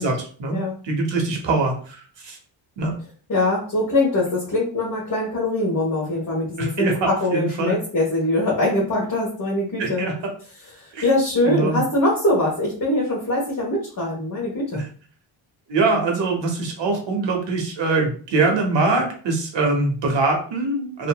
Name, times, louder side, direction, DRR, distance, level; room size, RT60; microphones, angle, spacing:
voice 1, 0.0-0.6 0.8-2.4 2.8-2.9 6.6-6.9 7.3-7.8 9.8-10.1 10.9-11.1 11.4-11.8 14.7-14.8 15.7-21.1, right 3 dB, 60° right, 2 dB, 1.1 m, -23 dB
voice 2, 3.3-10.0 10.8-14.8, left 1 dB, 40° left, -4 dB, 1.2 m, -22 dB
2.9 x 2.5 x 2.3 m, 0.43 s
cardioid pair, 65°, 49 cm